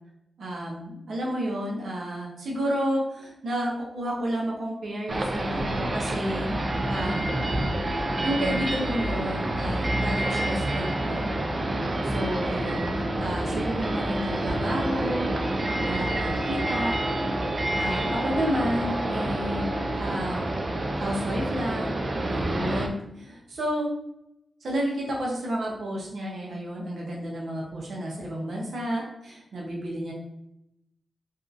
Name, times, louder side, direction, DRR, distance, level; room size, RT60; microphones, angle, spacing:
voice 1, 0.4-6.5 6.9-7.3 8.2-11.3 12.0-15.3 15.8-17.0 17.7-19.7 19.9-20.6 21.0-22.0 22.3-23.9 24.6-30.1, equal, 80° right, -3 dB, 0.8 m, -31 dB
sound 1, 5.1-22.9, right 1 dB, 45° right, 0.4 m, -28 dB
2.7 x 2.4 x 2.5 m, 0.81 s
cardioid pair, 60°, 0 cm